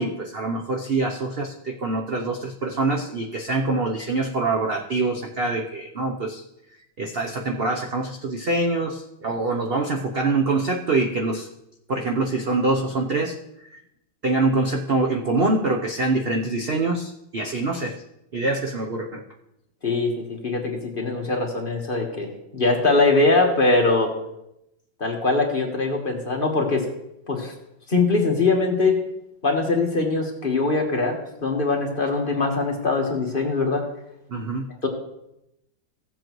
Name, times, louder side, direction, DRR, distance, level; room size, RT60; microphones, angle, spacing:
voice 1, 0.0-6.4 7.0-11.5 11.9-13.4 13.7-13.8 14.2-18.0 18.3-19.2 34.3-34.7, right 3 dB, 60° right, 2 dB, 0.6 m, -25 dB
voice 2, 19.8-24.1 25.0-26.8 27.3-27.5 27.9-29.0 29.4-33.8 34.8-34.9, left 3 dB, 30° left, 0 dB, 1.4 m, -22 dB
16.5 x 7.7 x 3.1 m, 0.84 s
omnidirectional pair, 2.0 m